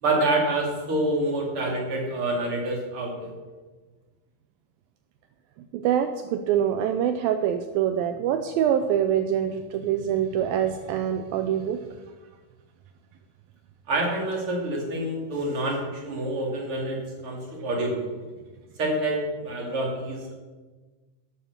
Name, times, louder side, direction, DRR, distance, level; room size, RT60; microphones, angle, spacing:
voice 1, 0.0-3.3 13.9-18.1 18.8-20.3, right 1 dB, 35° right, -1 dB, 3.3 m, -27 dB
voice 2, 5.7-11.8, right 9 dB, 80° right, 8 dB, 2.3 m, -25 dB
12.0 x 9.0 x 6.6 m, 1.3 s
omnidirectional pair, 4.3 m